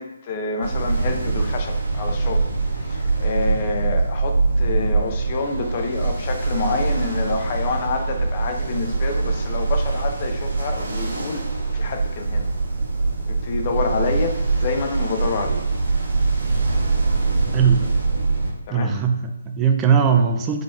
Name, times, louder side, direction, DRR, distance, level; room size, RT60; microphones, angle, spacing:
voice 1, 0.0-2.5 2.8-11.4 11.7-12.5 13.3-15.6 18.7-18.9, left 4 dB, 35° left, 4 dB, 0.6 m, -27 dB
Ocean, 0.6-18.5, right 3 dB, 65° right, 1.2 m, -23 dB
voice 2, 17.5-17.9 18.7-20.6, right 6 dB, 15° right, 4 dB, 0.4 m, -19 dB
3.7 x 3.6 x 2.4 m, 1.0 s
figure-of-eight pair, 140°, 0 cm